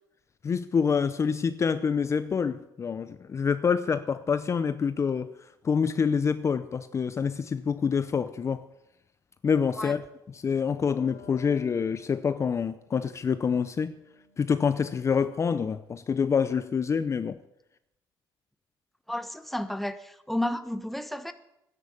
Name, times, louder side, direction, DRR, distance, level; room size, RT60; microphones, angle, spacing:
voice 1, 0.4-5.3 5.6-8.6 9.4-10.0 10.3-13.9 14.4-17.4, left 6 dB, 35° left, 0.6 m, -26 dB
Wind instrument woodwind instrument, 10.5-15.6, left 6 dB, 85° left, 4.7 m, -55 dB
voice 2, 19.1-21.3, left 1 dB, ahead, 1.1 m, -32 dB
12.0 x 10.5 x 8.7 m
cardioid pair, 105°, 9 cm